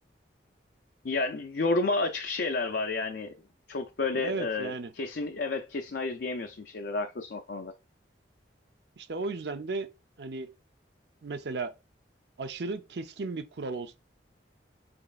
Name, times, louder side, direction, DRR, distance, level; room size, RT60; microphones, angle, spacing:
voice 1, 1.0-3.3 3.7-7.7, left 3 dB, 60° left, 0.5 m, -31 dB
voice 2, 4.1-4.9 9.0-9.9 10.2-10.5 11.2-11.7 12.4-14.0, right 3 dB, 65° right, 0.5 m, -35 dB
5.2 x 4.1 x 2.4 m
head